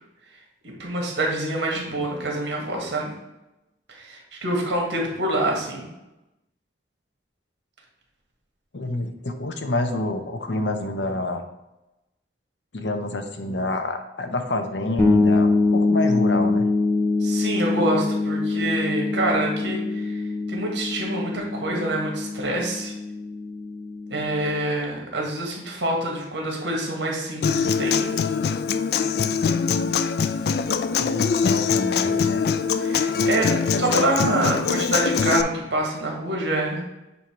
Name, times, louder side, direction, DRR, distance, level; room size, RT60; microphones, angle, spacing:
voice 1, 0.6-3.1 3.9-5.9 17.2-20.2 20.5-22.9 24.1-28.1 32.8-33.5 33.8-36.8, right 1 dB, 70° right, -1 dB, 1.6 m, -26 dB
voice 2, 8.7-11.4 12.7-16.7 29.4-30.0 31.0-32.4 33.5-34.0, left 2 dB, 75° left, 6 dB, 0.8 m, -28 dB
sound 1, 15.0-24.6, left 3 dB, 10° left, 0.7 m, -24 dB
Human voice / Acoustic guitar, 27.4-35.4, left 6 dB, 55° left, 0.3 m, -23 dB
7.7 x 2.8 x 4.5 m, 0.96 s
head